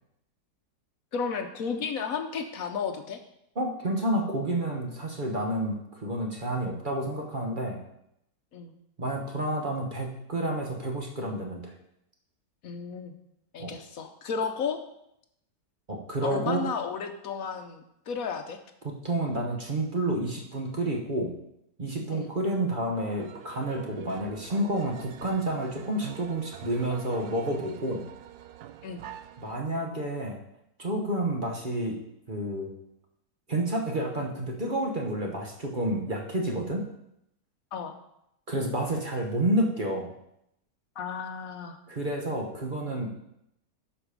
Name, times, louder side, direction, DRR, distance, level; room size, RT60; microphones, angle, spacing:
voice 1, 1.1-3.2 8.5-8.7 12.6-13.1 13.5-14.8 16.2-18.6 22.1-22.3 28.8-29.0 37.7-37.9 41.0-41.8, left 6 dB, 65° left, 6 dB, 1.2 m, -33 dB
voice 2, 3.5-7.8 9.0-11.7 13.6-13.7 15.9-16.7 18.8-21.3 21.8-28.0 29.4-30.4 30.8-32.0 32.3-32.7 33.5-36.9 38.5-40.1 41.9-43.1, right 1 dB, 35° right, 1 dB, 1.3 m, -30 dB
sound 1, 22.9-29.6, right 11 dB, 85° right, 1.1 m, -45 dB
12.0 x 5.1 x 5.1 m, 0.79 s
omnidirectional pair, 1.7 m